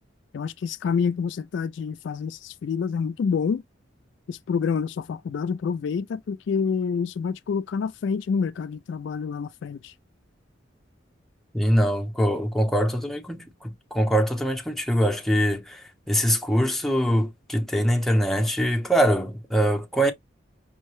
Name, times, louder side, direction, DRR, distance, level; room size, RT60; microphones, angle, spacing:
voice 1, 0.3-3.6 4.3-9.9, left 6 dB, 70° left, 0.3 m, -27 dB
voice 2, 11.5-20.1, equal, ahead, 0.7 m, -23 dB
5.5 x 2.1 x 3.0 m
head